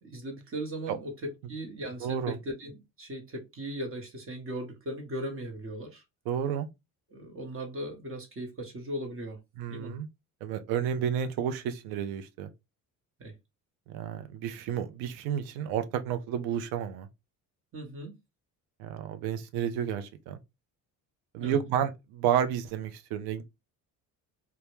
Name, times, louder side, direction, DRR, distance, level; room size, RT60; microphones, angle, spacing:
voice 1, 0.0-6.0 7.1-9.4 9.7-9.9 13.2-13.3 17.7-18.1 21.4-21.6, right 1 dB, 35° right, 0.8 m, -38 dB
voice 2, 2.0-2.3 6.3-6.7 9.6-10.1 10.4-12.5 13.9-17.1 18.8-20.4 21.3-23.4, right 9 dB, 85° right, 0.5 m, -31 dB
2.1 x 2.1 x 2.9 m
supercardioid pair, 75°, 37 cm